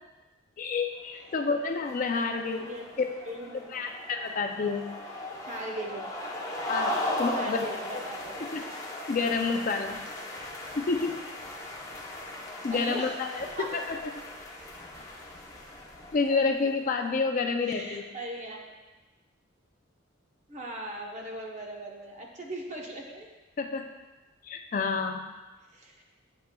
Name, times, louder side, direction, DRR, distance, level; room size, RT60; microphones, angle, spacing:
voice 1, 0.6-2.7 3.0-3.1 3.7-4.9 6.7-7.7 7.9-8.0 8.4-8.6 9.1-10.0 10.8-11.2 12.6-14.0 16.1-18.1 23.6-23.9 24.4-25.2, left 4 dB, 40° left, 5 dB, 0.4 m, -29 dB
sound 1, 1.2-16.9, left 1 dB, 15° left, 0.7 m, -38 dB
voice 2, 3.2-3.8 5.5-6.1 7.3-8.7 10.9-11.1 12.5-13.1 13.5-13.8 17.6-18.6 20.5-23.3 25.7-25.9, right 1 dB, 35° right, -1 dB, 0.9 m, -39 dB
9.1 x 5.1 x 2.3 m, 1.2 s
head